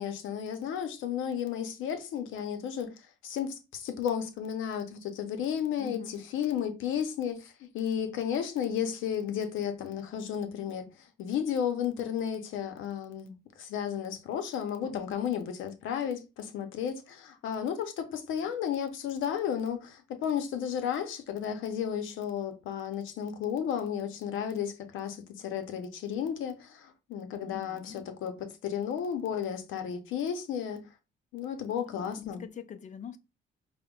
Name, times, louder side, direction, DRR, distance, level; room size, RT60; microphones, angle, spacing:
voice 1, 0.0-2.9 3.2-10.9 11.2-30.8 31.3-32.4, left 8 dB, 85° left, 0.6 m, -33 dB
voice 2, 5.8-6.2 14.8-15.3 27.4-28.1 31.9-33.2, left 7 dB, 40° left, 0.4 m, -44 dB
5.0 x 2.1 x 2.3 m
cardioid pair, 90°, 20 cm